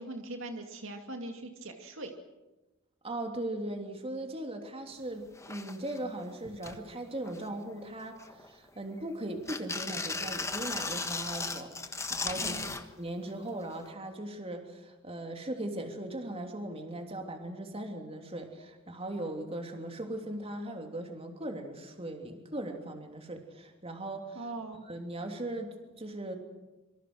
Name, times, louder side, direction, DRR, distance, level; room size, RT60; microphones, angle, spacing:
voice 1, 0.0-2.1 12.4-12.8 24.3-24.9, right 2 dB, 65° right, 4 dB, 2.4 m, -41 dB
voice 2, 3.0-12.6 12.9-24.4 24.9-26.4, right 1 dB, 30° right, 4 dB, 3.1 m, -39 dB
sound 1, 5.0-5.1 5.4-6.0 6.4-6.8 7.3-7.7 8.2-9.0 9.5-12.9 13.9-14.0, left 3 dB, 15° left, 1.4 m, -36 dB
26.5 x 24.5 x 6.4 m, 1.1 s
head